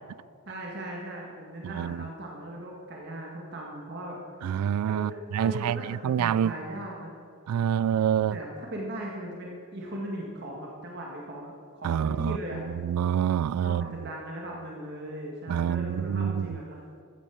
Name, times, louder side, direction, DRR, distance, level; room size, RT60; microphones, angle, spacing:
voice 1, 0.4-4.2 4.9-7.2 8.3-12.6 13.6-16.8, right 1 dB, 50° right, 1.7 m, -38 dB
voice 2, 1.6-2.0 4.4-6.5 7.5-8.4 11.8-12.4 12.8-13.8 15.5-16.5, right 9 dB, 85° right, 0.3 m, -27 dB
13.5 x 8.4 x 7.0 m
head